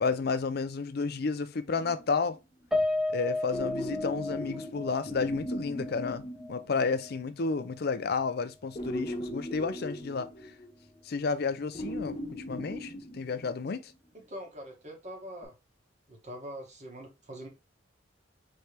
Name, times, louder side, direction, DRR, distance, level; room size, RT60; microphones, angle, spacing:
voice 1, 0.0-2.4 3.1-10.3 11.1-13.9, left 4 dB, 55° left, 0.5 m, -31 dB
sound 1, 1.7-2.4 3.5-7.1 8.7-11.0 11.7-13.7 15.4-15.5, equal, 30° left, 0.9 m, -38 dB
Piano, 2.7-7.2 7.6-7.7 8.1-8.2, left 2 dB, ahead, 0.5 m, -34 dB
voice 2, 14.1-15.5 16.1-17.5, equal, 40° right, 1.4 m, -43 dB
4.4 x 3.2 x 3.3 m
head